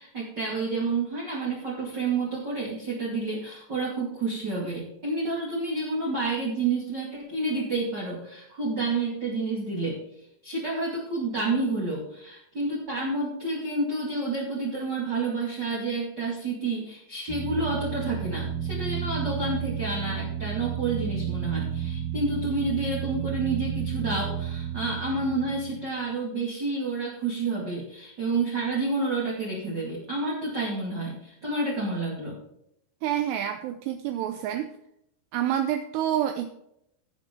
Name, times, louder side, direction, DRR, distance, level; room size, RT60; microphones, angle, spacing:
voice 1, 0.0-10.0 10.4-32.4, right 3 dB, 35° right, -5 dB, 1.9 m, -29 dB
sound 1, 17.3-25.9, right 9 dB, 60° right, 3.5 m, -32 dB
voice 2, 33.0-34.7 35.3-36.5, right 10 dB, 80° right, 6 dB, 2.6 m, -28 dB
16.0 x 7.0 x 3.8 m, 0.77 s
omnidirectional pair, 5.3 m